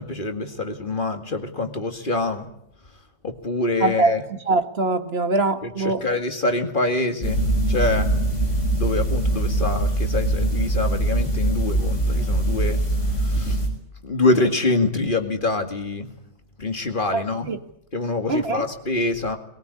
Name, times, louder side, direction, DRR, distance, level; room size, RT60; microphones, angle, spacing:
voice 1, 0.0-2.5 3.2-4.2 5.6-8.1 8.7-12.8 13.2-13.6 14.0-16.1 16.6-17.5 17.9-19.4, left 2 dB, 45° left, 6 dB, 2.3 m, -25 dB
voice 2, 3.8-4.1 4.5-6.0 17.1-17.6 18.3-18.7, right 3 dB, 60° right, 8 dB, 1.8 m, -22 dB
sound 1, 7.2-13.7, right 1 dB, 85° left, 6.3 m, -22 dB
21.5 x 20.0 x 9.9 m, 0.75 s
omnidirectional pair, 1.2 m